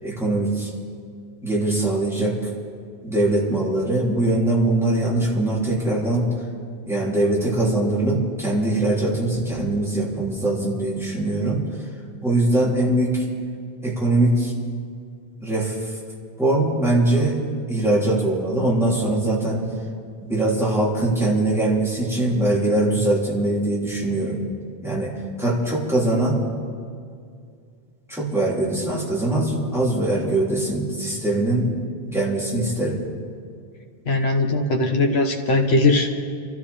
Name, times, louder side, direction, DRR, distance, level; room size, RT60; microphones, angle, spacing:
voice 1, 0.0-0.7 1.4-2.4 3.0-6.3 6.9-11.6 12.2-13.2 13.8-14.5 15.4-16.0 16.4-17.4 17.7-19.6 20.2-24.4 24.8-25.1 25.4-26.4 28.1-31.7 32.1-33.0, right 2 dB, ahead, -6 dB, 3.2 m, -22 dB
voice 2, 34.0-36.1, left 2 dB, 80° left, 1 dB, 1.5 m, -19 dB
26.5 x 13.5 x 3.5 m, 2.3 s
omnidirectional pair, 1.1 m